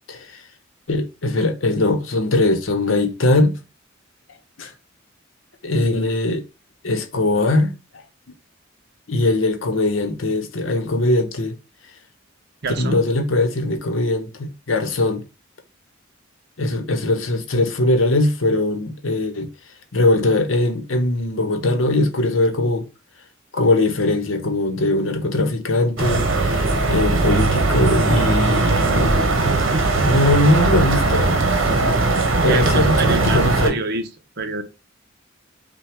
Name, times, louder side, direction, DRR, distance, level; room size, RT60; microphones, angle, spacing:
voice 1, 0.1-0.4 0.9-3.6 4.6-4.7 5.6-6.4 6.8-7.7 9.1-11.5 12.8-15.2 16.6-19.5 19.9-22.9 23.5-29.4 30.0-31.4 32.4-33.8, left 2 dB, 80° left, 0.9 m, -20 dB
voice 2, 12.6-13.1 32.4-34.1 34.4-34.6, right 3 dB, 55° right, 0.7 m, -25 dB
sound 1, 26.0-33.7, right 3 dB, 70° right, 1.0 m, -19 dB
5.6 x 2.3 x 3.5 m
head